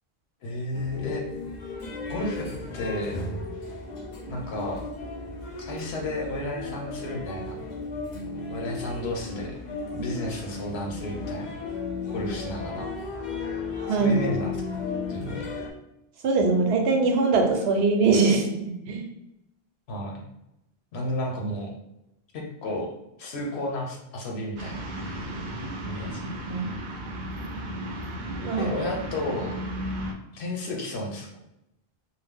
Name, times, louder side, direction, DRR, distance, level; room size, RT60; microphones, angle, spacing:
voice 1, 0.4-1.2 2.1-3.2 4.3-4.8 5.6-7.6 8.5-9.6 9.9-11.6 12.1-12.9 13.9-14.8 15.1-15.5 19.9-20.2 20.9-21.7 22.3-22.9 23.2-24.8 25.8-26.3 28.6-29.6 30.3-31.3, left 1 dB, 85° left, 0 dB, 1.0 m, -32 dB
sound 1, 0.7-15.7, left 3 dB, 55° left, 0.6 m, -35 dB
voice 2, 13.8-14.2 16.2-19.0 26.5-26.6 28.4-28.7, right 4 dB, 85° right, 2 dB, 0.9 m, -22 dB
sound 2, 24.6-30.1, right 1 dB, 55° right, 0.6 m, -34 dB
2.8 x 2.1 x 3.5 m, 0.86 s
omnidirectional pair, 1.0 m